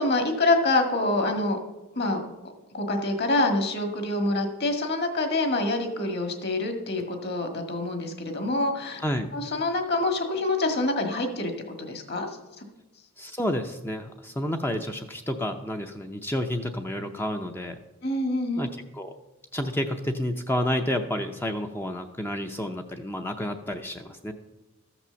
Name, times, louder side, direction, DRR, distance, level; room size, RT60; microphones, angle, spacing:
voice 1, 0.0-1.6 1.9-2.2 2.7-9.0 9.3-12.6 18.0-18.6, left 2 dB, 45° left, 5 dB, 1.7 m, -26 dB
voice 2, 13.2-17.8 18.6-19.1 19.5-24.3, left 1 dB, 10° left, 5 dB, 0.5 m, -30 dB
13.5 x 6.0 x 6.9 m, 1.0 s
head